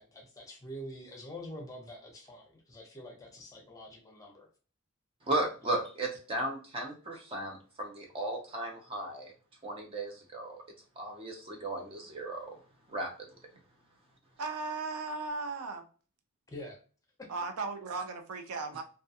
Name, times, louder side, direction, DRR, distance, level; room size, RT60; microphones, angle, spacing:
voice 1, 0.0-4.5 16.5-16.8, equal, 15° left, 0.6 m, -46 dB
voice 2, 5.3-9.3 9.6-10.6 11.0-12.6 12.9-13.1, right 1 dB, 25° right, 0.5 m, -35 dB
voice 3, 14.4-15.8 17.3-18.8, right 3 dB, 85° right, 0.4 m, -36 dB
2.3 x 2.2 x 2.6 m
head